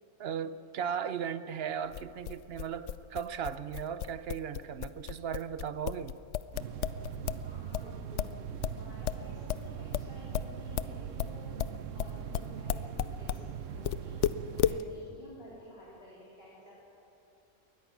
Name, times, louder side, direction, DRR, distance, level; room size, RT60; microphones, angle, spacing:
voice 1, 0.2-6.1, right 8 dB, 55° right, 0.9 m, -36 dB
sound 1, 1.9-7.5 7.7-13.5 13.8-14.8, left 10 dB, 70° left, 0.9 m, -33 dB
sound 2, 6.5-14.8, right 8 dB, 70° right, 1.2 m, -41 dB
voice 2, 7.4-8.2 8.8-11.5 11.9-12.8 13.2-14.2 14.6-16.7, equal, 45° left, 3.8 m, -52 dB
22.0 x 19.5 x 6.1 m
omnidirectional pair, 1.4 m